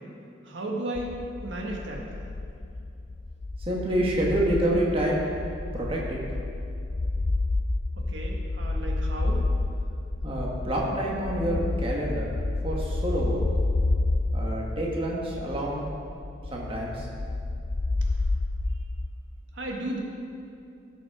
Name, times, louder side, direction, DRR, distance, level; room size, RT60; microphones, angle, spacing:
voice 1, 0.4-2.0 8.0-9.4 19.5-20.0, right 1 dB, 75° right, -1 dB, 1.5 m, -34 dB
sound 1, 1.0-19.2, left 2 dB, 25° left, 0.3 m, -30 dB
voice 2, 3.6-5.2 5.7-6.2 10.2-12.3 12.6-13.4 14.3-15.9 16.5-17.1, right 1 dB, 30° right, -3 dB, 1.4 m, -27 dB
16.5 x 6.2 x 4.8 m, 2.6 s
head